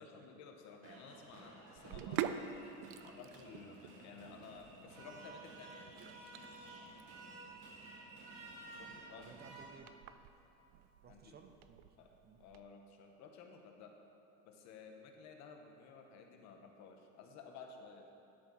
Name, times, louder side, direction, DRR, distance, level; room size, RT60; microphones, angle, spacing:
voice 1, 0.0-2.8 3.0-6.2 8.8-9.3 11.0-11.4 12.0-14.0 14.4-18.1, left 5 dB, 60° left, 3 dB, 1.1 m, -55 dB
sound 1, 0.8-9.7, right 2 dB, 65° right, 2.1 m, -54 dB
Sink (filling or washing), 1.8-12.6, right 10 dB, 85° right, 0.5 m, -47 dB
voice 2, 6.9-7.9 9.2-9.9 10.3-10.7 11.0-12.0 12.2-12.4, right 6 dB, 30° right, 5 dB, 0.7 m, -60 dB
11.0 x 4.5 x 6.1 m, 2.9 s
cardioid pair, 125°, 32 cm